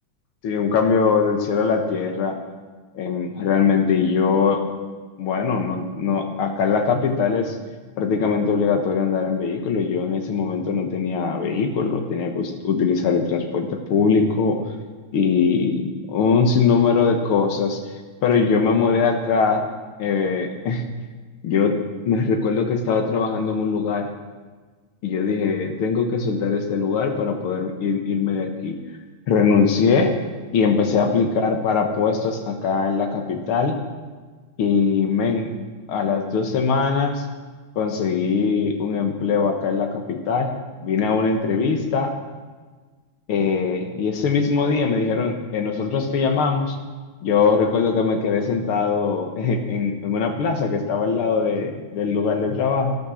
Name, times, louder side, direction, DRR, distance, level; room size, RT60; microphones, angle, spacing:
voice 1, 0.4-2.4 2.9-4.6 5.2-7.6 8.0-14.6 15.1-17.8 18.2-19.7 20.0-20.8 21.4-21.8 22.1-24.1 25.0-28.8 29.3-30.1 30.5-33.8 34.6-35.5 35.9-37.3 37.8-40.5 40.8-42.1 43.3-46.8 47.2-53.0, left 5 dB, 90° left, 4 dB, 2.2 m, -21 dB
13.5 x 13.0 x 6.3 m, 1.4 s
omnidirectional pair, 2.3 m